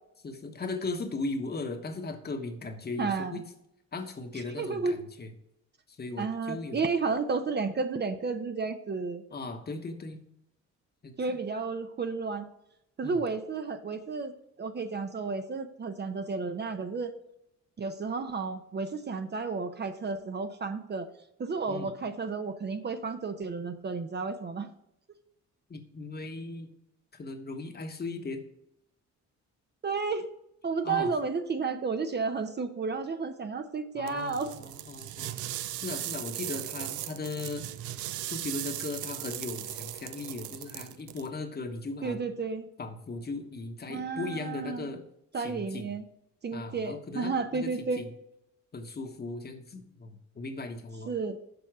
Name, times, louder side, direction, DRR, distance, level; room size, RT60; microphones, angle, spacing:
voice 1, 0.2-3.4 3.9-5.3 5.9-6.8 9.3-10.2 11.0-11.4 13.0-13.2 21.7-21.9 25.7-26.7 27.1-28.4 30.8-31.1 33.9-35.4 35.7-37.7 38.3-42.2 42.8-45.0 45.4-46.0 46.5-48.1 48.7-51.1, left 3 dB, 30° left, 5 dB, 1.2 m, -37 dB
voice 2, 3.0-3.4 4.3-4.9 6.2-9.2 11.2-12.5 13.0-14.3 14.6-17.1 17.8-21.1 21.4-24.7 29.8-30.3 30.6-34.5 42.0-42.7 43.9-44.9 45.3-46.0 46.4-48.0 51.1-51.4, right 4 dB, 35° right, 8 dB, 0.7 m, -32 dB
sound 1, 34.1-41.3, right 13 dB, 75° right, 0.5 m, -38 dB
6.9 x 5.3 x 4.8 m, 0.81 s
cardioid pair, 90°, 30 cm